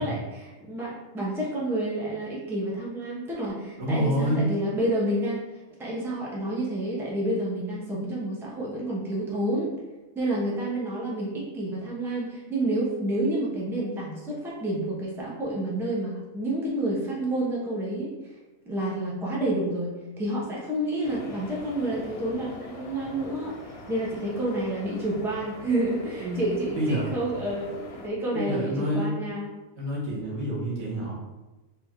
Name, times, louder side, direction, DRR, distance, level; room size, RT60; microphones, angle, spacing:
voice 1, 0.0-5.4 5.8-9.7 10.1-18.4 18.6-29.5, right 1 dB, ahead, -5 dB, 0.8 m, -29 dB
voice 2, 3.8-4.5 26.2-26.4 26.8-27.1 28.3-29.2 29.8-31.1, equal, 75° right, -4 dB, 1.7 m, -27 dB
sound 1, 21.0-28.1, left 2 dB, 60° left, 0.3 m, -43 dB
4.2 x 3.2 x 3.5 m, 1.1 s
omnidirectional pair, 1.4 m